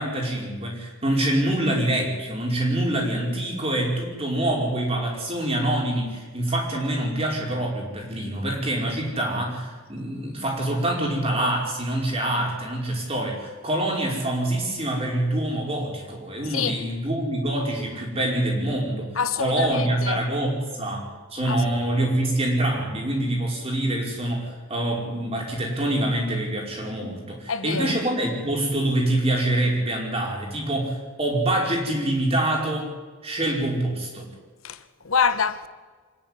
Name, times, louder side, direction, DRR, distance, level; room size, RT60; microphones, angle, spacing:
voice 1, 0.0-32.9 33.2-34.3, right 1 dB, 30° right, 5.3 m, -25 dB
voice 2, 19.2-20.2 21.5-21.6 27.5-27.9 34.6-35.7, left 6 dB, 85° left, 1.2 m, -26 dB
25.5 x 11.0 x 9.8 m
head